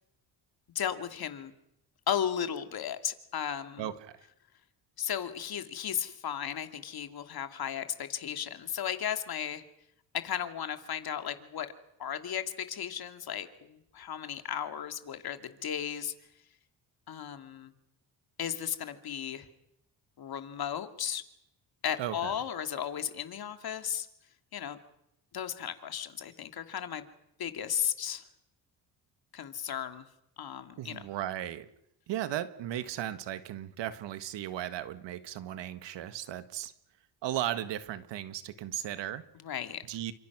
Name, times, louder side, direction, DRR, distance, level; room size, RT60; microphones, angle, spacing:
voice 1, 0.7-1.5 2.1-3.9 5.0-9.6 10.1-11.7 12.0-16.1 17.1-17.7 18.4-19.5 20.2-21.2 21.8-24.1 24.5-24.8 25.3-27.0 27.4-28.2 29.3-30.1 30.4-31.0 39.3-39.8, left 9 dB, 55° left, 2.6 m, -35 dB
voice 2, 3.8-4.1 22.0-22.3 30.8-31.7 32.1-36.7 37.2-39.3 39.9-40.1, right 12 dB, 80° right, 1.7 m, -36 dB
29.5 x 26.0 x 6.2 m
cardioid pair, 95°, 43 cm